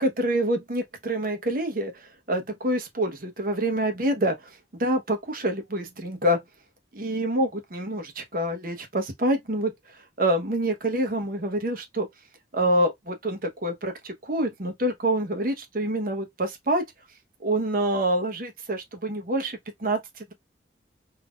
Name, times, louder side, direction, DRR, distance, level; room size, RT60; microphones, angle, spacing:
voice 1, 0.0-2.0 2.3-4.3 4.8-6.4 6.9-9.7 10.2-12.1 12.5-16.9 17.4-20.3, right 1 dB, 50° right, 0.9 m, -26 dB
3.6 x 2.8 x 2.3 m
head